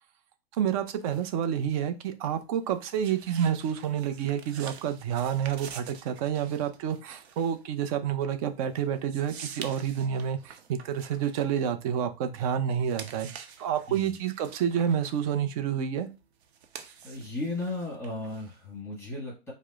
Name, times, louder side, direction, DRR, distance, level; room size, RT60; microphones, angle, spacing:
voice 1, 0.5-13.3 13.6-16.1, right 8 dB, 35° right, 8 dB, 0.5 m, -29 dB
sound 1, 0.6-12.3 12.7-18.8, right 7 dB, 80° right, 0.7 m, -48 dB
voice 2, 17.0-19.5, left 2 dB, 10° left, -5 dB, 1.3 m, -35 dB
4.7 x 2.0 x 2.3 m, 0.28 s
hypercardioid pair, 135°, 31 cm